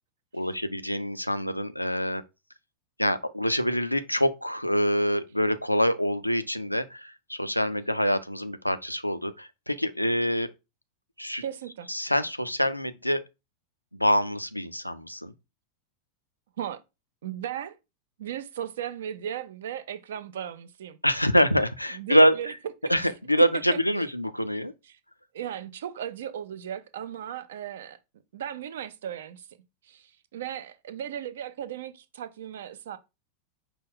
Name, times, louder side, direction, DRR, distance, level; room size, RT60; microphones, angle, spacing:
voice 1, 0.3-2.2 3.0-10.5 11.2-11.4 11.9-13.2 13.9-15.3 21.0-22.5 22.9-24.7, equal, 90° left, 0.3 m, -25 dB
voice 2, 11.4-11.9 16.6-16.8 17.2-17.8 18.2-21.0 21.9-22.5 22.8-22.9 23.7-24.1 24.8-25.0 25.3-28.0 28.3-29.5 29.8-33.0, right 10 dB, 60° right, 0.4 m, -36 dB
5.0 x 2.3 x 3.6 m
figure-of-eight pair, 90°, 0 cm